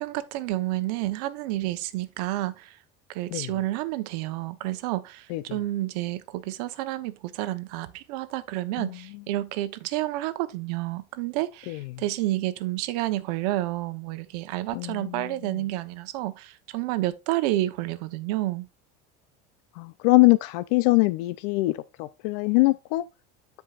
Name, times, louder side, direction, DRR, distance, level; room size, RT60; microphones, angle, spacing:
voice 1, 0.0-2.8 3.1-18.7, right 16 dB, 75° right, 0.9 m, -30 dB
voice 2, 5.3-5.6 8.8-9.2 11.7-12.0 14.7-15.6 19.7-23.1, left 22 dB, 75° left, 0.5 m, -24 dB
13.5 x 4.8 x 2.4 m
cardioid pair, 165°, 21 cm